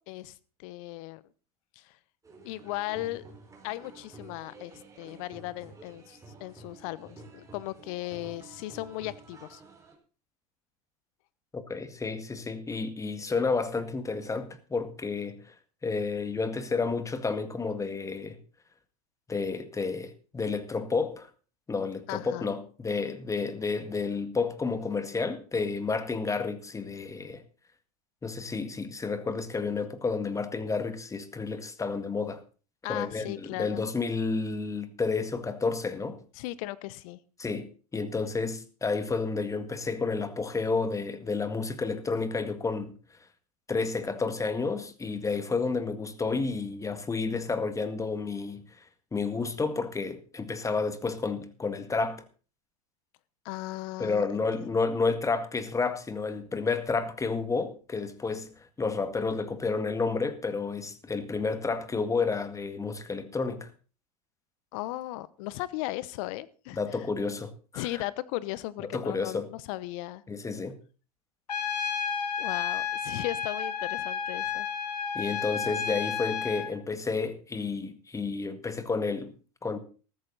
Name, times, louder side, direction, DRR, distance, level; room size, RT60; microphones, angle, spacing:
voice 1, 0.1-1.2 1.8-2.0 2.4-3.2 3.6-4.7 5.0-9.6 22.1-22.5 32.8-33.8 36.4-37.2 53.4-54.8 64.7-66.8 67.8-70.2 72.4-74.7, left 17 dB, 60° left, 1.0 m, -37 dB
sound 1, 2.2-10.0, right 3 dB, 15° right, 4.9 m, -50 dB
voice 2, 11.5-15.5 15.8-18.4 19.3-21.3 21.7-27.4 28.2-32.4 32.9-36.2 37.4-42.9 43.7-48.6 49.1-52.2 54.0-63.7 66.8-68.0 68.8-69.5 70.3-70.7 75.1-79.3 79.6-79.8, left 4 dB, 15° left, 1.9 m, -31 dB
Trumpet, 71.5-76.7, left 7 dB, 90° left, 1.6 m, -32 dB
14.0 x 14.0 x 4.1 m
hypercardioid pair, 90°, 20 cm